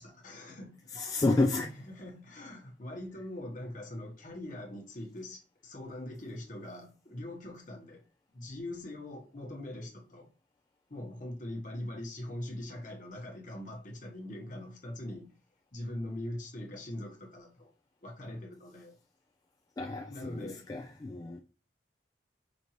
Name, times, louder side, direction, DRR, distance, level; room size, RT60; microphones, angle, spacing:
voice 1, 0.0-8.0 8.3-10.3 10.9-15.3 15.7-17.7 18.0-19.0 20.1-20.6, left 1 dB, 45° left, 1.2 m, -42 dB
voice 2, 1.0-1.7 19.8-21.4, left 2 dB, 20° left, 0.3 m, -30 dB
5.1 x 2.6 x 2.9 m
head